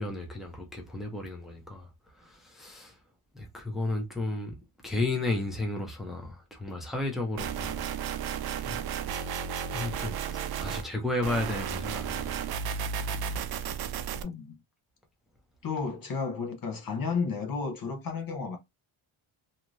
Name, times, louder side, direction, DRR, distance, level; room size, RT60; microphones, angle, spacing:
voice 1, 0.0-1.9 2.2-3.0 3.3-4.6 4.8-7.9 8.7-8.8 9.7-12.4, left 2 dB, ahead, 0.7 m, -33 dB
sound 1, 7.4-10.9 11.2-14.2, right 7 dB, 50° right, 0.5 m, -33 dB
voice 2, 14.2-14.6 15.6-18.6, left 5 dB, 45° left, 0.7 m, -33 dB
2.6 x 2.4 x 3.0 m
cardioid pair, 130°, 49 cm